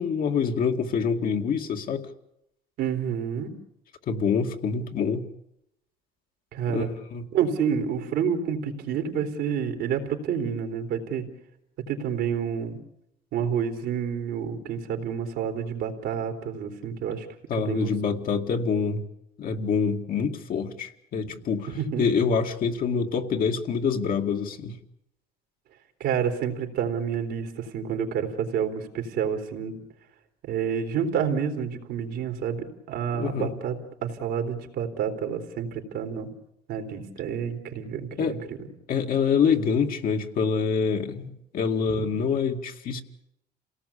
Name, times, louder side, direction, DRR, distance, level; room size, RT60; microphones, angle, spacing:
voice 1, 0.0-2.1 4.1-5.3 6.7-7.3 17.5-19.0 19.4-21.7 22.0-24.8 33.1-33.5 38.2-38.4 38.9-43.0, left 6 dB, 55° left, 4 dB, 2.3 m, -26 dB
voice 2, 2.8-3.5 6.5-6.9 7.3-11.2 11.9-12.8 13.3-17.3 17.6-17.9 21.2-21.3 21.7-22.1 26.0-29.8 30.5-33.8 34.0-36.3 36.7-38.4 41.9-42.1, right 7 dB, 80° right, 5 dB, 3.6 m, -29 dB
28.0 x 18.0 x 8.5 m, 0.81 s
cardioid pair, 110°, 17 cm